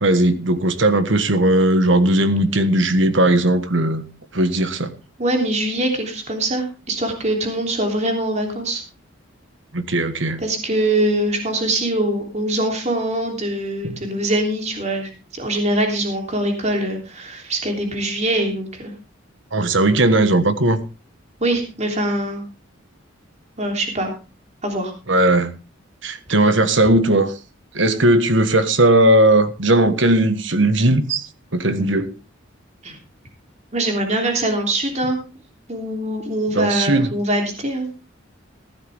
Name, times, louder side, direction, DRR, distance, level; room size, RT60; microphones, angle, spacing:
voice 1, 0.0-4.0 4.3-4.9 9.7-10.4 13.8-14.0 19.5-20.8 25.1-25.5 26.0-27.3 27.7-31.2 31.5-32.1 36.5-37.1, right 1 dB, 65° right, 1.4 m, -17 dB
voice 2, 5.2-8.8 10.4-18.9 21.4-22.4 23.6-24.1 24.6-24.9 32.8-33.0 33.7-35.2 35.7-37.9, right 1 dB, 35° right, 3.2 m, -23 dB
15.0 x 12.0 x 3.5 m
head